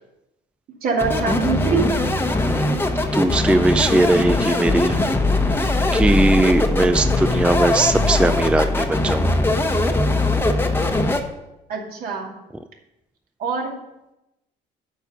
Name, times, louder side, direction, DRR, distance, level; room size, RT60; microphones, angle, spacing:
voice 1, 0.8-1.8 11.7-12.3 13.4-13.7, right 5 dB, 60° right, 0 dB, 2.6 m, -23 dB
sound 1, 1.0-11.2, left 2 dB, 15° left, 1.0 m, -20 dB
voice 2, 3.1-5.0 5.9-9.3, right 2 dB, 5° right, 10 dB, 0.4 m, -19 dB
9.2 x 5.5 x 7.1 m, 0.92 s
cardioid pair, 110°, 17 cm